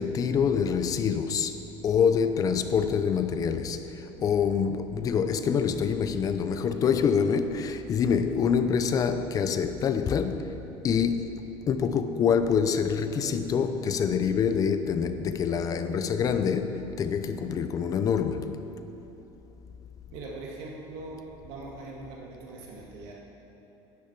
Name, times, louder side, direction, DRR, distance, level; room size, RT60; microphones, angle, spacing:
voice 1, 0.0-1.6 1.8-18.6, left 6 dB, 35° left, 0.6 m, -26 dB
voice 2, 20.1-23.1, right 2 dB, 75° right, 2.0 m, -41 dB
10.5 x 9.7 x 6.0 m
cardioid pair, 145°, 11 cm